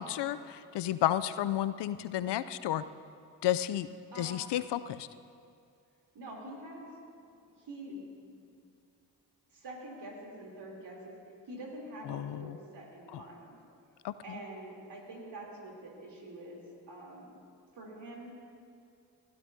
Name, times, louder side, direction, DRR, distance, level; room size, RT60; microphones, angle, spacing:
voice 1, 0.0-2.8 3.4-3.9 4.2-5.1 12.1-12.6 13.1-13.2 14.0-14.4, left 12 dB, 70° left, 14 dB, 0.5 m, -32 dB
voice 2, 4.1-4.5 6.1-6.9 7.6-8.0 8.3-8.4 9.5-11.1 11.5-13.6 14.2-16.6 16.9-17.3 17.7-18.3, right 1 dB, 70° right, -3 dB, 3.3 m, -46 dB
18.5 x 15.0 x 2.7 m, 2.4 s
supercardioid pair, 40°, 43 cm